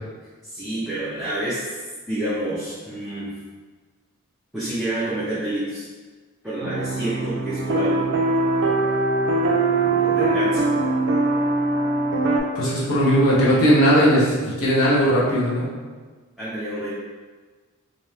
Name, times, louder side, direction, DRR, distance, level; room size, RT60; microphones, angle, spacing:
voice 1, 0.4-1.8 2.1-3.3 4.5-5.9 6.4-8.0 9.8-10.6 16.4-16.9, right 1 dB, ahead, -13 dB, 0.7 m, -28 dB
sound 1, 6.6-12.4, right 2 dB, 55° right, 0.5 m, -22 dB
voice 2, 12.5-15.7, equal, 65° left, -7 dB, 1.1 m, -18 dB
3.1 x 2.8 x 3.2 m, 1.4 s
head